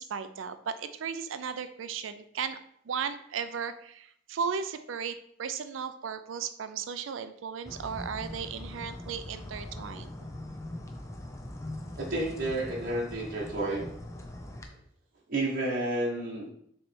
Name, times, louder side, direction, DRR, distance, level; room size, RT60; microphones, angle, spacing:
voice 1, 0.0-2.6 2.9-10.1, right 6 dB, 90° right, 11 dB, 0.4 m, -35 dB
sound 1, 7.6-14.6, left 1 dB, 15° left, 0.6 m, -41 dB
voice 2, 12.0-13.9 15.3-16.5, right 2 dB, 45° right, -5 dB, 1.1 m, -31 dB
7.3 x 3.2 x 4.5 m, 0.68 s
head